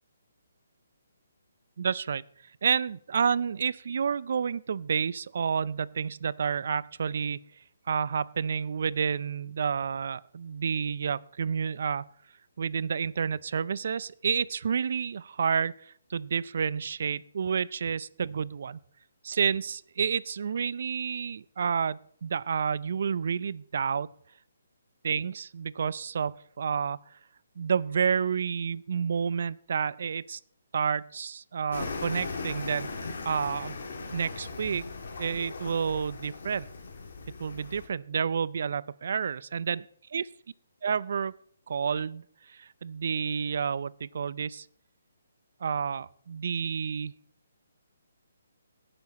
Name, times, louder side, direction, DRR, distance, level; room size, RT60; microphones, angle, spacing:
voice 1, 1.8-2.2 2.6-7.4 7.9-12.1 12.6-18.8 19.2-24.1 25.0-27.0 27.6-30.4 30.7-32.9 33.2-33.8 34.1-34.9 35.2-36.7 37.4-39.8 40.1-40.2 40.8-41.3 41.7-44.7 45.6-47.1, right 6 dB, 60° right, 20 dB, 0.5 m, -30 dB
sound 1, 31.7-37.9, left 3 dB, 65° left, 3.0 m, -38 dB
17.5 x 7.0 x 4.2 m, 0.64 s
hypercardioid pair, 155°, 0 cm